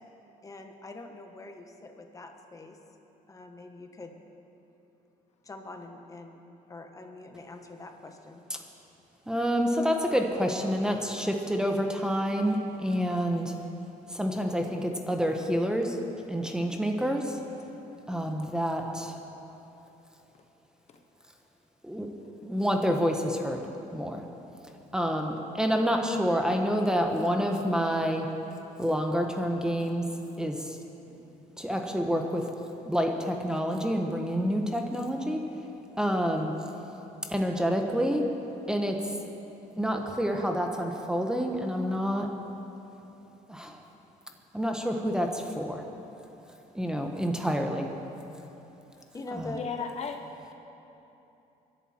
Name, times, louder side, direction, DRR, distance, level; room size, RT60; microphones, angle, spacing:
voice 1, 0.4-2.8 3.3-4.1 5.4-6.4 6.7-8.4 49.1-49.9, left 2 dB, 20° left, 4 dB, 1.6 m, -43 dB
voice 2, 9.3-13.6 14.1-16.0 16.3-17.4 18.1-19.2 21.8-22.1 22.4-24.2 24.9-28.3 28.8-30.1 30.4-30.8 31.1-31.2 31.6-32.5 32.9-35.4 36.0-36.6 37.3-38.3 38.7-39.1 39.8-42.3 43.5-43.8 44.5-45.9 46.7-47.9 49.3-49.5, equal, 5° right, 3 dB, 1.2 m, -28 dB
voice 3, 49.5-50.2, left 6 dB, 50° left, 5 dB, 1.1 m, -34 dB
24.0 x 11.5 x 4.5 m, 3.0 s
cardioid pair, 105°, 15 cm